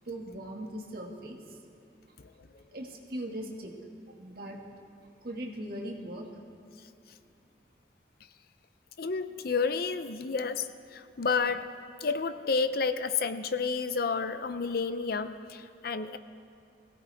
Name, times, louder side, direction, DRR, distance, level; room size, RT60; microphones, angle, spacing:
voice 1, 0.0-1.6 2.7-3.7 4.2-4.6 5.2-6.3, right 1 dB, 55° right, 1 dB, 2.0 m, -39 dB
voice 2, 9.0-10.7 10.9-11.7 12.0-16.2, left 4 dB, 55° left, 11 dB, 0.6 m, -30 dB
21.5 x 17.0 x 3.5 m, 2.7 s
head